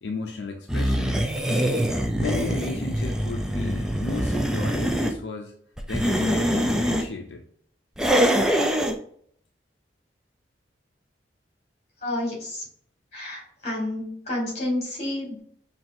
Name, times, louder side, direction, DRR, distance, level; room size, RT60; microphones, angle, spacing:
voice 1, 0.0-1.1 2.2-5.5 5.9-7.4, left 3 dB, 80° left, 2 dB, 0.5 m, -33 dB
sound 1, 0.7-5.1 5.8-7.1 8.0-9.0, equal, 5° right, 0.4 m, -24 dB
voice 2, 12.0-12.6 13.1-15.4, left 1 dB, 35° left, -2 dB, 1.8 m, -30 dB
5.8 x 2.7 x 2.6 m, 0.62 s
head